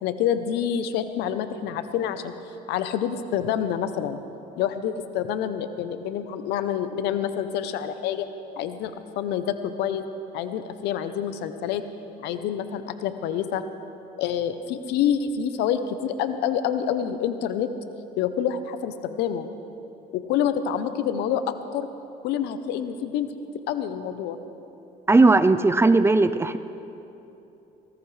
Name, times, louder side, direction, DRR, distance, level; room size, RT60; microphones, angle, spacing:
voice 1, 0.0-2.3 2.7-4.2 4.6-8.3 8.6-10.1 10.3-11.8 12.2-13.6 14.2-17.7 18.2-19.5 20.1-21.4 21.7-21.9 22.2-23.3 23.7-24.4, left 9 dB, 90° left, 10 dB, 0.7 m, -27 dB
voice 2, 25.1-26.6, right 3 dB, 15° right, 13 dB, 0.4 m, -17 dB
19.5 x 18.0 x 3.3 m, 3.0 s
cardioid pair, 110°, 17 cm